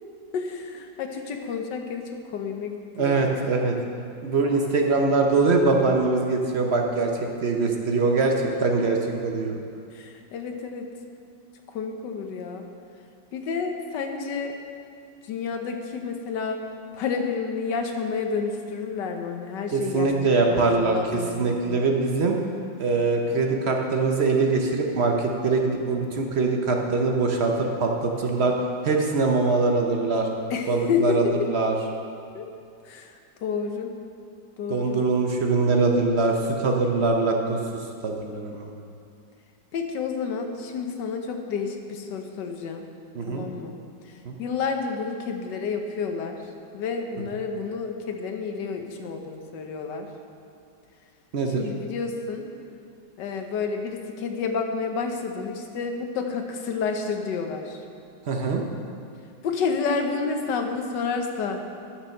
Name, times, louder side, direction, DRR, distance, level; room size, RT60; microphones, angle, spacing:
voice 1, 0.3-3.4 9.9-10.9 11.7-12.7 13.3-14.6 15.2-16.6 16.9-21.6 30.5-31.5 32.3-32.5 32.8-33.2 33.4-33.9 34.6-35.0 39.7-42.8 43.3-43.7 44.0-44.1 44.4-46.4 46.7-50.1 51.5-52.5 53.2-57.8 59.4-61.6, left 5 dB, 70° left, 4 dB, 1.5 m, -30 dB
voice 2, 2.9-3.7 4.2-9.0 9.2-9.6 19.7-22.4 22.8-28.5 28.8-30.3 30.7-31.8 34.7-38.7 43.1-43.5 44.2-44.4 51.3-51.7 58.3-58.6, right 3 dB, 55° right, 2 dB, 0.7 m, -23 dB
9.6 x 6.4 x 6.5 m, 2.5 s
omnidirectional pair, 2.0 m